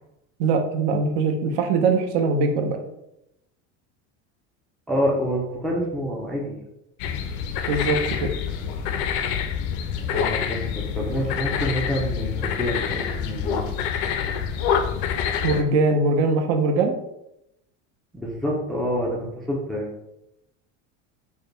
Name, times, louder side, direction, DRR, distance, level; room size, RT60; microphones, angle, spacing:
voice 1, 0.4-2.8 7.7-8.3 15.4-17.0, right 3 dB, 65° right, 4 dB, 0.7 m, -21 dB
voice 2, 4.9-6.6 10.1-13.7 18.1-19.9, equal, ahead, -3 dB, 0.4 m, -27 dB
sound 1, 7.0-15.6, left 7 dB, 65° left, 0.5 m, -26 dB
4.8 x 2.2 x 3.1 m, 0.84 s
cardioid pair, 165°, 33 cm